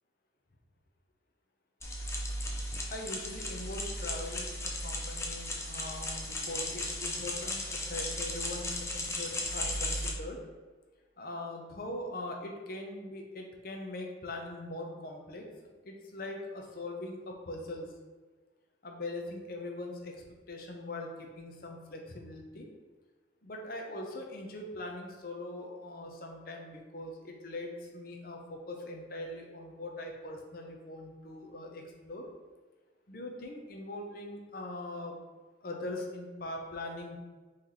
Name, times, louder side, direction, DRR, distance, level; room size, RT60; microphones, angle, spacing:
sound 1, 1.8-10.1, left 1 dB, 15° left, 0.4 m, -36 dB
voice 1, 2.9-10.4 11.2-15.5 15.8-17.9 18.8-22.7 23.4-32.3 33.1-35.2 35.6-37.2, left 1 dB, 50° left, 1 dB, 0.7 m, -41 dB
4.1 x 3.2 x 3.9 m, 1.4 s
head